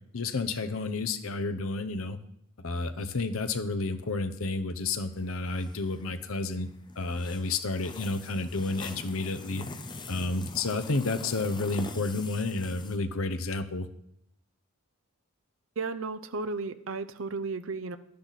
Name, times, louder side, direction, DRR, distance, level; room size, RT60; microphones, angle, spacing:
voice 1, 0.1-2.2 2.6-6.7 7.0-9.6 10.1-13.9, left 3 dB, 75° left, 10 dB, 0.8 m, -31 dB
sound 1, 5.0-13.0, left 3 dB, 20° left, 0.7 m, -44 dB
voice 2, 15.8-18.0, right 4 dB, 65° right, 11 dB, 0.6 m, -34 dB
12.0 x 10.5 x 4.1 m, 0.74 s
head